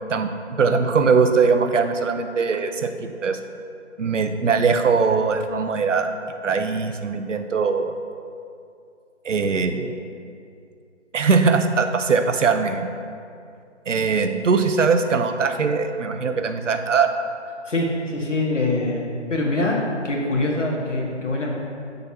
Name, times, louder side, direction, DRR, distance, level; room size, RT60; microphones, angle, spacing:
voice 1, 0.6-3.4 4.0-6.1 6.4-7.9 9.2-9.9 11.1-12.9 13.9-17.1, right 5 dB, 80° right, 7 dB, 0.7 m, -21 dB
voice 2, 17.7-19.0 19.3-19.8 20.0-21.6, left 2 dB, 85° left, -2 dB, 1.7 m, -24 dB
6.9 x 4.1 x 5.7 m, 2.4 s
hypercardioid pair, 165°, 36 cm